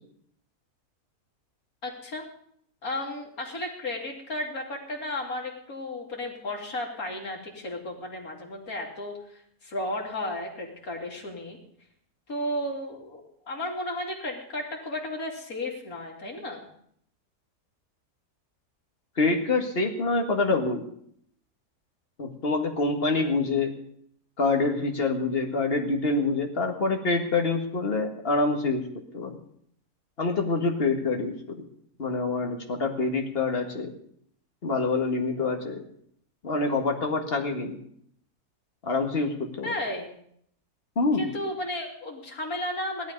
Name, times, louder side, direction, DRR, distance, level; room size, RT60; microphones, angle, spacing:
voice 1, 1.8-2.2 2.8-11.6 12.3-16.7 39.6-40.2 41.2-43.1, left 1 dB, 60° left, 0 dB, 3.2 m, -34 dB
voice 2, 19.2-20.9 22.2-23.7 24.4-28.9 29.1-29.4 30.2-31.6 32.0-33.9 34.6-35.8 36.4-37.8 38.8-39.7 41.0-41.3, left 3 dB, 40° left, 3 dB, 2.0 m, -26 dB
17.0 x 12.0 x 5.3 m, 0.68 s
omnidirectional pair, 1.7 m